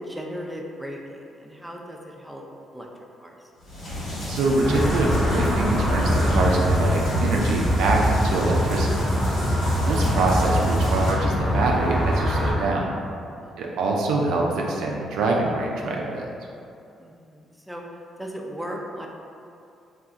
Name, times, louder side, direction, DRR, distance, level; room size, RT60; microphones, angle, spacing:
voice 1, 0.0-2.4 2.7-2.9 3.2-3.5 13.4-13.9 17.0-19.1, equal, 5° right, -1 dB, 0.5 m, -37 dB
sound 1, 3.6-11.1, left 1 dB, 75° left, 1.2 m, -32 dB
voice 2, 4.3-8.9 9.9-12.9 13.6-16.3, right 2 dB, 80° right, -1 dB, 0.3 m, -24 dB
sound 2, 4.6-12.5, equal, 20° left, 1.0 m, -23 dB
2.4 x 2.3 x 3.8 m, 2.6 s
supercardioid pair, 60°, 0 cm